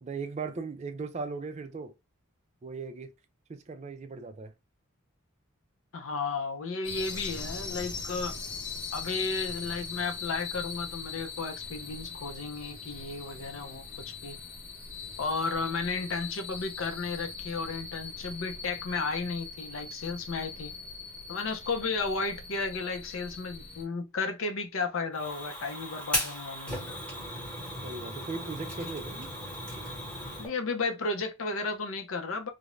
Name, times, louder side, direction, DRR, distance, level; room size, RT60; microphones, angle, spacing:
voice 1, 0.0-1.9 2.6-3.1 3.5-4.5 27.8-29.3, right 4 dB, 30° right, 0.3 m, -38 dB
voice 2, 5.9-8.3 8.9-14.4 15.2-20.7 21.3-27.0 30.4-32.5, left 4 dB, 70° left, 0.5 m, -33 dB
sound 1, 6.8-23.8, left 4 dB, 40° left, 0.9 m, -41 dB
Fire, 25.1-30.5, equal, 5° left, 1.1 m, -36 dB
2.4 x 2.0 x 3.0 m
head